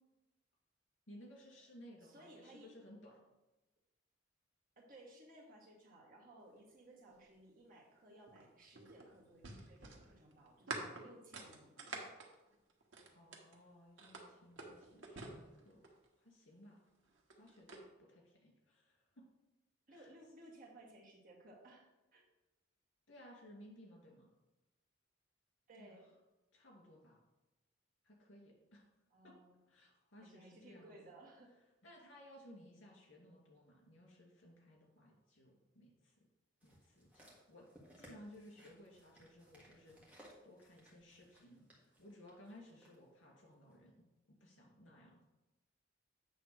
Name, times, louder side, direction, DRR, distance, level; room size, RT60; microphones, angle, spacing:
voice 1, 1.1-3.2 13.1-15.8 16.2-16.8 17.4-19.2 19.9-20.1 23.1-24.3 25.8-26.0 26.5-27.2 28.0-28.8 29.2-29.3 29.7-31.0 31.8-36.3 36.6-37.7 37.9-44.0 44.3-45.2, equal, 80° left, -1 dB, 2.5 m, -59 dB
voice 2, 2.0-2.7 4.8-12.0 19.9-22.2 25.7-26.1 29.1-29.6 30.2-31.6, right 1 dB, 45° right, -3 dB, 1.8 m, -59 dB
sound 1, 8.3-13.6 14.0-16.1 17.1-17.8, right 3 dB, 85° right, 1.3 m, -48 dB
sound 2, 36.6-43.0 43.7-43.8, equal, 10° right, 1.6 m, -63 dB
8.4 x 3.5 x 6.3 m, 1.0 s
head